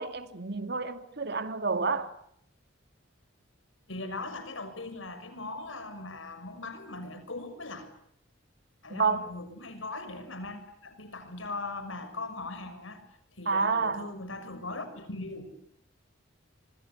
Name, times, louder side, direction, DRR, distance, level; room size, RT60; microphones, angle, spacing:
voice 1, 0.0-2.1 8.9-9.2 13.5-14.1, right 4 dB, 60° right, 2.3 m, -29 dB
voice 2, 3.9-7.9 8.8-13.0 13.4-15.5, left 2 dB, 85° left, 6.3 m, -39 dB
26.0 x 25.0 x 8.2 m
head